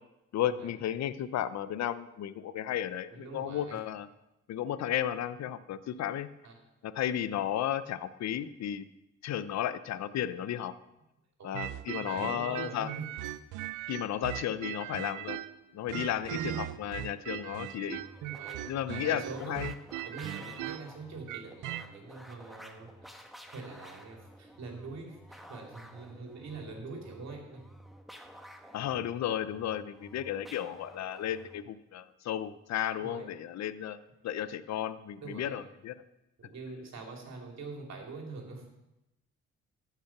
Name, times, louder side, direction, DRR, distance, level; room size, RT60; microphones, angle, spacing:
voice 1, 0.3-4.1 4.5-6.3 6.8-8.9 9.2-10.7 11.4-12.9 13.9-15.4 15.7-18.0 18.7-19.7 28.7-34.0 34.2-35.9, left 10 dB, 65° left, 14 dB, 0.7 m, -34 dB
voice 2, 3.1-3.8 6.4-6.5 11.4-13.1 18.3-19.6 20.1-23.1 23.5-27.6 33.0-33.3 35.2-35.6 36.4-38.6, right 4 dB, 60° right, 1 dB, 3.0 m, -44 dB
sound 1, 11.5-15.6 15.9-21.9, right 13 dB, 80° right, 0.5 m, -39 dB
sound 2, 16.0-31.7, equal, ahead, 1.1 m, -52 dB
14.0 x 5.8 x 5.9 m, 0.93 s
cardioid pair, 90°, 30 cm